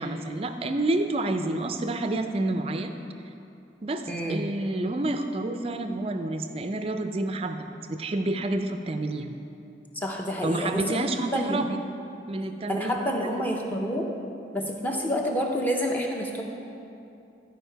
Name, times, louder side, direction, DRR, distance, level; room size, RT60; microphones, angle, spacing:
voice 1, 0.0-2.9 3.8-9.3 10.4-11.7 12.3-13.0, right 2 dB, 30° right, 7 dB, 0.4 m, -29 dB
voice 2, 4.1-4.5 9.9-11.7 12.7-14.1 14.5-16.4, equal, 10° left, 0 dB, 0.7 m, -28 dB
11.5 x 4.7 x 4.5 m, 2.7 s
head